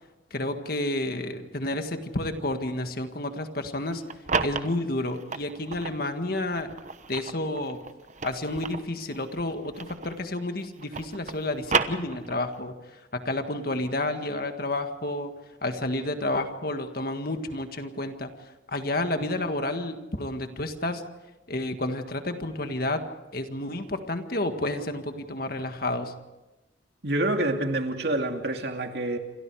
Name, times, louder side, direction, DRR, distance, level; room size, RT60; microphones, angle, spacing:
voice 1, 0.3-4.0 4.4-6.7 7.1-7.8 8.2-12.7 13.1-15.3 15.6-18.3 18.7-21.0 21.5-23.0 23.3-26.1, left 1 dB, 50° left, 7 dB, 1.8 m, -30 dB
sound 1, 3.9-6.0 6.6-10.3 10.6-12.6, right 5 dB, 40° right, 1.0 m, -32 dB
voice 2, 27.0-29.2, right 1 dB, 55° right, 4 dB, 2.5 m, -27 dB
28.5 x 25.5 x 4.9 m, 1.0 s
head